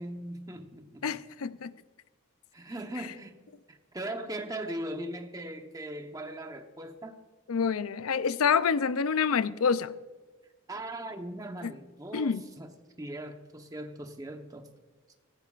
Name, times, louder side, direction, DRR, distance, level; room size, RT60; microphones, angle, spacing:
voice 1, 0.0-1.2 2.5-3.4 3.7-7.2 10.7-12.7 13.0-14.7, right 1 dB, 15° right, 5 dB, 1.0 m, -39 dB
voice 2, 1.0-1.7 7.5-9.9 11.6-11.7 12.1-12.4, left 6 dB, 80° left, 15 dB, 0.5 m, -27 dB
17.0 x 14.5 x 2.5 m, 1.3 s
head